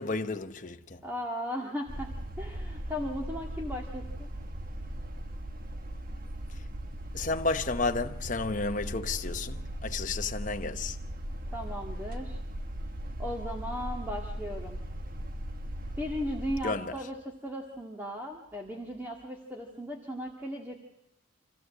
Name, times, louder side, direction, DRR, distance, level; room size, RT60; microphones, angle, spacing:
voice 1, 0.0-1.0 7.1-11.0 16.6-16.9, left 3 dB, 35° left, 0.9 m, -32 dB
voice 2, 1.0-2.1 2.4-4.3 11.5-12.4 13.2-14.8 16.0-20.8, equal, 10° right, 1.9 m, -37 dB
sound 1, 1.9-16.6, right 1 dB, 40° right, 1.4 m, -38 dB
26.0 x 16.0 x 7.4 m
head